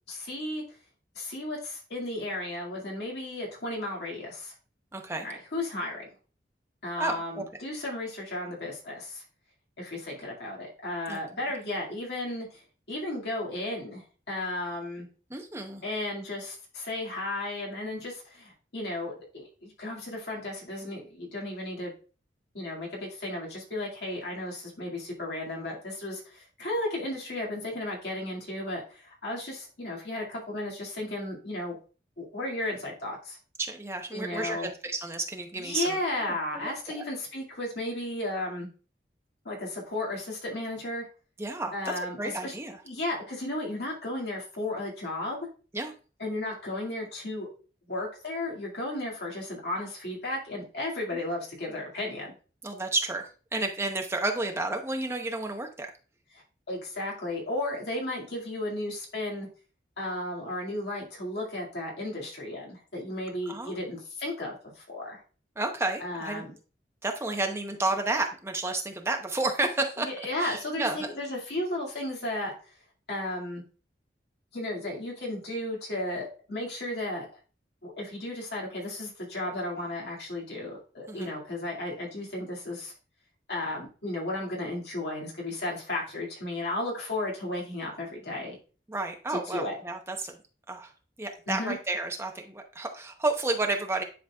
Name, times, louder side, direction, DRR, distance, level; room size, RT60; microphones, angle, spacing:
voice 1, 0.1-0.6 1.1-4.5 5.2-6.0 6.8-9.2 9.8-12.6 12.9-15.1 15.8-21.9 22.5-31.8 32.2-33.4 34.1-34.7 35.5-38.7 39.4-41.1 41.7-42.6 42.8-45.4 46.2-47.5 47.9-52.3 56.7-59.5 60.0-65.2 66.0-66.5 70.0-72.5 73.1-73.6 74.5-77.3 77.8-82.9 83.5-88.6 89.3-89.8 91.5-91.8, left 1 dB, 65° left, -2 dB, 2.1 m, -34 dB
voice 2, 4.9-5.3 7.0-7.4 11.1-11.2 15.3-15.8 33.6-37.0 41.4-42.8 45.7-45.9 52.6-55.9 63.5-63.7 65.6-66.4 67.0-71.1 81.1-81.3 88.9-90.4 90.7-90.9 91.2-94.0, right 2 dB, 15° right, 4 dB, 0.8 m, -31 dB
10.0 x 4.0 x 2.3 m, 0.37 s
head